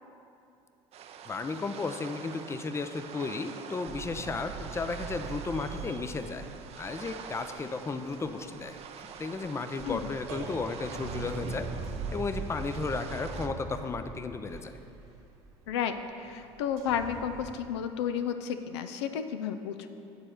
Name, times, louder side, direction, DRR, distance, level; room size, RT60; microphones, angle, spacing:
sound 1, 0.9-13.5, right 7 dB, 45° right, 0.6 m, -46 dB
voice 1, 1.3-6.5 6.8-11.7 12.1-14.8, left 4 dB, 20° left, 9 dB, 0.5 m, -34 dB
sound 2, 3.9-7.6 7.9-17.5, right 4 dB, 65° right, 1.6 m, -41 dB
voice 2, 15.7-19.9, left 8 dB, 80° left, 8 dB, 0.4 m, -32 dB
9.3 x 4.3 x 6.5 m, 2.7 s
hypercardioid pair, 70°, 14 cm